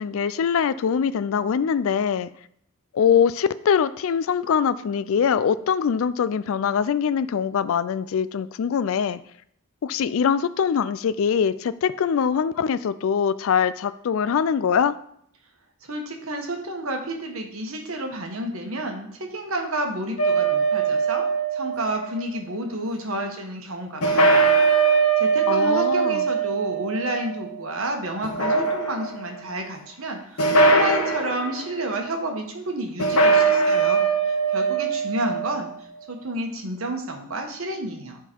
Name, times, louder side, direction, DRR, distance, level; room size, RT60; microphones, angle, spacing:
voice 1, 0.0-2.3 2.9-9.2 9.8-15.0 25.5-26.2, left 7 dB, 60° left, 16 dB, 0.3 m, -23 dB
voice 2, 15.8-21.3 21.5-24.5 24.9-38.2, right 1 dB, 65° right, 3 dB, 1.3 m, -30 dB
sound 1, 20.2-22.2 24.0-27.7 28.2-29.2 30.4-31.5 33.0-35.7, right 4 dB, 80° left, 1.0 m, -21 dB
10.5 x 3.8 x 4.5 m, 0.69 s
head